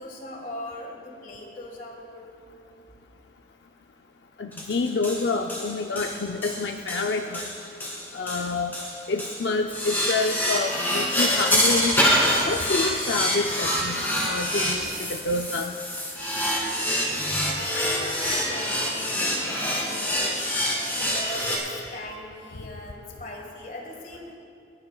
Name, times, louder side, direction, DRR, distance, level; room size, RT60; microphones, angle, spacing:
voice 1, 0.0-2.3 17.0-20.4 21.0-24.4, left 1 dB, 45° left, 1 dB, 1.7 m, -40 dB
voice 2, 4.4-7.5 8.1-8.7 9.1-11.9 12.5-15.7, left 3 dB, 75° left, 4 dB, 0.5 m, -28 dB
sound 1, 4.5-21.6, equal, 10° left, 2.3 m, -26 dB
28.0 x 9.7 x 2.3 m, 2.5 s
head